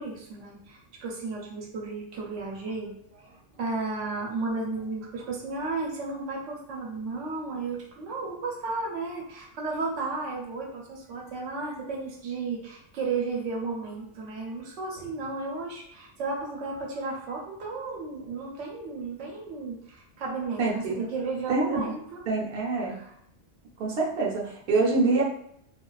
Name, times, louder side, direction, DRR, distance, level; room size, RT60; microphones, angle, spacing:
voice 1, 0.0-22.2 22.9-23.1, right 3 dB, 85° right, -2 dB, 1.0 m, -34 dB
voice 2, 20.6-21.1 21.5-21.9 22.3-23.0 23.8-25.2, right 3 dB, 65° right, -3 dB, 0.8 m, -25 dB
2.4 x 2.3 x 2.2 m, 0.70 s
omnidirectional pair, 1.2 m